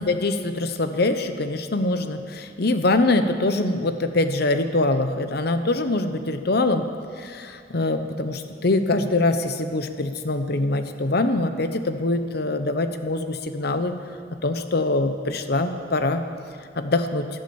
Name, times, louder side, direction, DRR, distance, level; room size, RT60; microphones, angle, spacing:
voice 1, 0.0-6.9 7.2-13.9 14.4-16.2 16.8-17.3, left 2 dB, 60° left, 8 dB, 1.0 m, -23 dB
12.5 x 11.5 x 8.6 m, 2.3 s
head